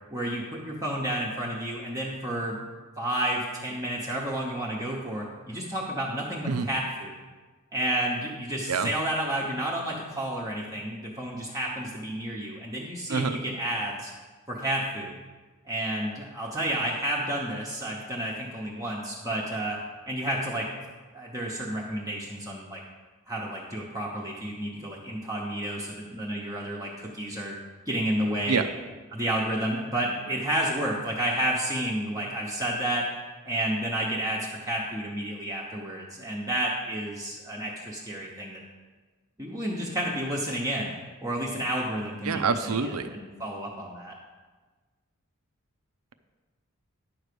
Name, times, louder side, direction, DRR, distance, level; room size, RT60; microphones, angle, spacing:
voice 1, 0.1-2.6 3.0-7.2 7.7-14.1 14.5-15.2 15.7-19.8 20.1-20.7 21.1-22.8 23.3-27.6 27.9-28.6 29.1-33.0 33.4-38.6 39.4-40.9 41.2-44.1, right 1 dB, 15° right, -4 dB, 0.9 m, -31 dB
voice 2, 42.2-43.1, right 5 dB, 85° right, 9 dB, 0.6 m, -26 dB
10.5 x 4.7 x 6.8 m, 1.3 s
head